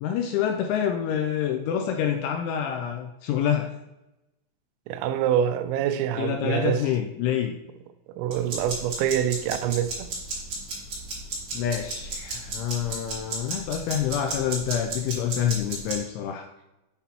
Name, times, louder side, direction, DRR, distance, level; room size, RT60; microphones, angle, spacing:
voice 1, 0.0-3.7 6.2-7.5 11.5-16.5, left 9 dB, 85° left, 2.8 m, -27 dB
voice 2, 4.9-6.8 8.2-10.1, right 9 dB, 85° right, 3.3 m, -25 dB
sound 1, 8.3-16.0, right 2 dB, 40° right, 2.6 m, -34 dB
8.3 x 6.0 x 2.9 m
omnidirectional pair, 5.9 m